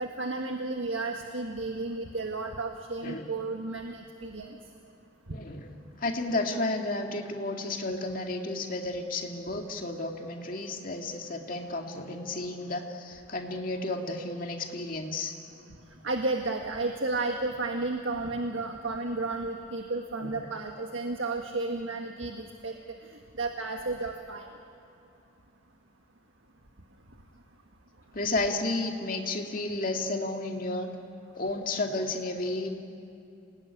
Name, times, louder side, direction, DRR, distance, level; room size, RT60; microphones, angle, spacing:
voice 1, 0.0-4.6 16.0-22.8 23.4-24.5, right 3 dB, 70° right, 3 dB, 1.6 m, -32 dB
voice 2, 5.3-5.7 6.0-15.4 20.2-20.4 28.1-30.9 31.3-32.7, left 2 dB, 40° left, 2 dB, 2.3 m, -32 dB
27.5 x 19.0 x 9.9 m, 2.6 s
head